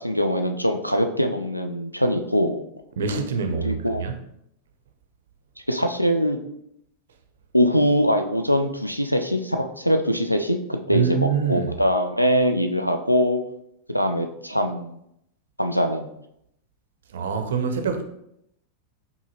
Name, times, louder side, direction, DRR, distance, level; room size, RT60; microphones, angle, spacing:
voice 1, 0.0-2.6 3.6-4.0 5.7-6.4 7.5-13.4 13.9-15.0 15.6-16.1, equal, 90° left, 0.4 m, -22 dB
voice 2, 3.0-4.2 10.9-11.7 17.1-18.0, right 6 dB, 60° right, 0.5 m, -25 dB
4.7 x 2.7 x 2.9 m
figure-of-eight pair, 90°, 0 cm